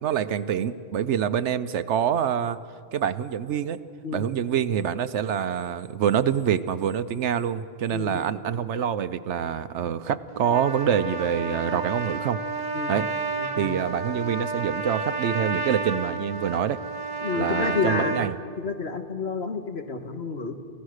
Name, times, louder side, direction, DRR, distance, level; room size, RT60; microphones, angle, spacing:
voice 1, 0.0-2.6 2.9-3.8 4.1-12.4 12.9-13.1 13.6-16.8 17.3-18.3, right 8 dB, 80° right, 12 dB, 1.0 m, -26 dB
voice 2, 7.9-8.2 12.7-13.0 13.4-13.7 17.2-18.2 18.6-20.5, left 4 dB, 65° left, 6 dB, 1.7 m, -30 dB
Trumpet, 10.3-18.3, right 3 dB, 45° right, 1.3 m, -31 dB
29.0 x 15.5 x 6.5 m, 2.2 s
omnidirectional pair, 1.2 m